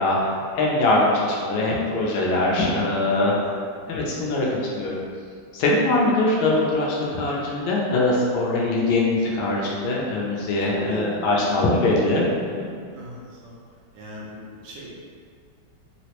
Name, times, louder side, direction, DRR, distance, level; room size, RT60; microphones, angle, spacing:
voice 1, 0.0-3.3 3.9-5.0 5.5-12.2 12.5-12.7, left 2 dB, 85° left, -4 dB, 1.4 m, -22 dB
voice 2, 3.0-3.4 8.5-8.8 10.7-11.3 12.9-13.6 13.9-15.0, right 1 dB, 75° right, -5 dB, 1.2 m, -40 dB
3.8 x 2.0 x 2.8 m, 2.2 s
omnidirectional pair, 2.1 m